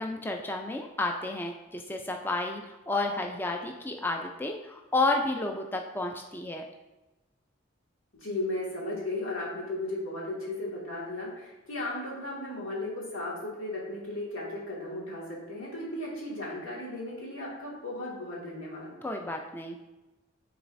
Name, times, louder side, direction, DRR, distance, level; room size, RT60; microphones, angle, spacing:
voice 1, 0.0-6.6 19.0-19.8, left 2 dB, 10° left, 2 dB, 0.3 m, -31 dB
voice 2, 8.1-18.9, left 1 dB, 90° left, -5 dB, 1.9 m, -35 dB
9.5 x 4.0 x 2.5 m, 1.1 s
head